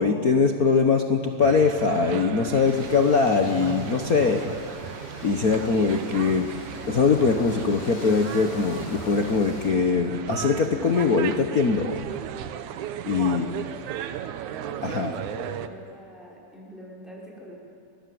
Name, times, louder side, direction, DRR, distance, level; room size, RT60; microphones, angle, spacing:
voice 1, 0.0-4.4 5.2-6.5 6.9-12.0 13.1-13.5 14.8-15.1, left 4 dB, 60° left, 4 dB, 0.9 m, -22 dB
sound 1, 1.4-15.7, right 10 dB, 85° right, 2.4 m, -36 dB
sound 2, 2.6-9.7, left 1 dB, 35° left, 4.9 m, -42 dB
voice 2, 4.0-4.5 13.1-13.9 14.6-17.5, equal, ahead, -4 dB, 5.8 m, -43 dB
29.5 x 21.0 x 7.8 m, 2.4 s
omnidirectional pair, 3.4 m